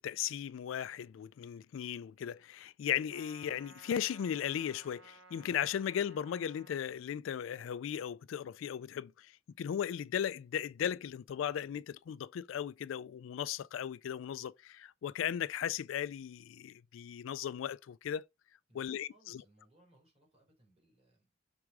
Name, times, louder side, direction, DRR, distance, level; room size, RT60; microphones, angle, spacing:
voice 1, 0.0-9.3 9.6-18.3 18.7-19.4, left 9 dB, 80° left, 0.3 m, -37 dB
Trumpet, 3.1-6.8, right 2 dB, 70° right, 2.2 m, -57 dB
voice 2, 18.7-21.3, right 1 dB, 30° right, 3.0 m, -66 dB
6.0 x 3.5 x 4.7 m
head